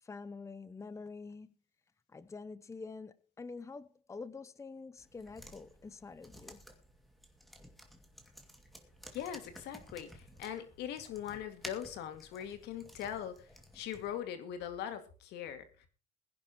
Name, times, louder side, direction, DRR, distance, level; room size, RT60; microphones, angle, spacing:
voice 1, 0.0-1.5 2.1-6.6, left 4 dB, 15° left, 0.7 m, -47 dB
sound 1, 5.0-14.2, equal, ahead, 2.3 m, -54 dB
voice 2, 9.1-13.5 13.7-15.9, left 9 dB, 85° left, 2.2 m, -41 dB
21.0 x 10.5 x 3.0 m
cardioid pair, 110°, 17 cm